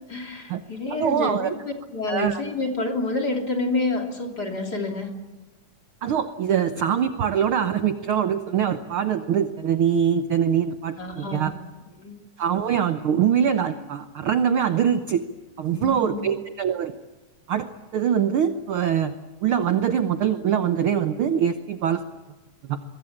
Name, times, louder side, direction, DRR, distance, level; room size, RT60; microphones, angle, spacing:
voice 1, 0.1-5.1 10.9-11.5 12.0-12.1 15.7-16.3, left 2 dB, 30° left, 2 dB, 3.3 m, -28 dB
voice 2, 0.9-1.5 2.1-2.4 6.0-11.5 12.4-15.2 15.6-16.9 17.5-17.7 17.9-19.1 19.4-22.0 22.7-22.8, right 8 dB, 75° right, 9 dB, 1.2 m, -23 dB
23.5 x 22.5 x 8.6 m, 1.2 s
omnidirectional pair, 3.7 m